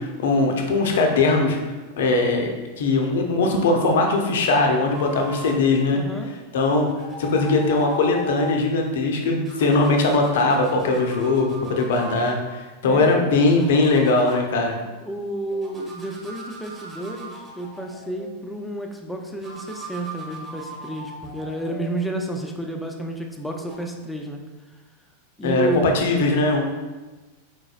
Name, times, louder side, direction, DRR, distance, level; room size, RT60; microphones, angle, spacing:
voice 1, 0.0-1.6 2.0-6.0 6.5-6.9 7.2-14.7 25.4-26.7, left 3 dB, 60° left, 2 dB, 0.6 m, -20 dB
sound 1, 4.9-5.6 6.7-8.6 9.4-12.4 13.3-14.4 15.5-18.6 19.4-22.7 23.6-23.8, equal, 20° right, 1.2 m, -39 dB
voice 2, 5.9-6.3 12.8-13.4 15.0-24.4 25.4-25.9, right 1 dB, 5° left, 2 dB, 0.5 m, -31 dB
4.8 x 3.8 x 2.4 m, 1.2 s
figure-of-eight pair, 90°, 0 cm